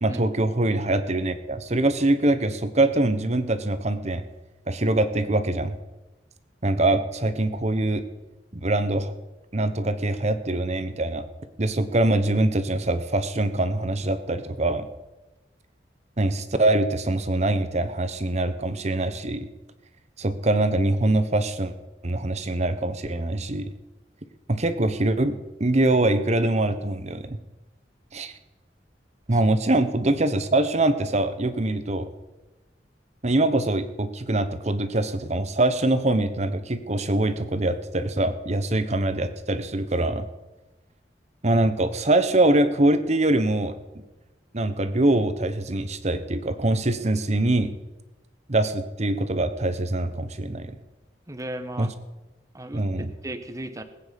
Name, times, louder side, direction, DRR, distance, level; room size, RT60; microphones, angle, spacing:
voice 1, 0.0-4.2 4.7-5.7 6.6-8.0 8.5-9.1 9.5-11.3 11.6-14.9 16.2-19.5 20.2-21.7 22.0-23.7 24.5-27.4 28.1-28.3 29.3-32.1 33.2-40.3 41.4-43.7 44.5-47.7 48.5-50.8 51.8-51.9 52.7-53.1, right 2 dB, 40° right, 11 dB, 1.1 m, -23 dB
voice 2, 51.3-51.9 52.5-53.8, right 1 dB, 20° right, 10 dB, 1.1 m, -35 dB
20.5 x 9.0 x 5.3 m, 1.1 s
head